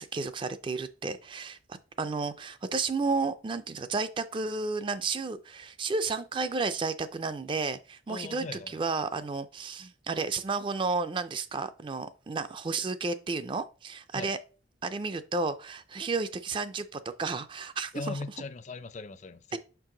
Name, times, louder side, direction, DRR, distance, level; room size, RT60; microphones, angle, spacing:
voice 1, 0.0-1.6 2.0-14.4 14.8-18.2 19.5-19.6, right 4 dB, 25° right, 0.3 m, -32 dB
voice 2, 8.1-8.8 14.1-14.3 17.9-19.6, left 3 dB, 40° left, 0.4 m, -39 dB
5.7 x 4.6 x 3.7 m
head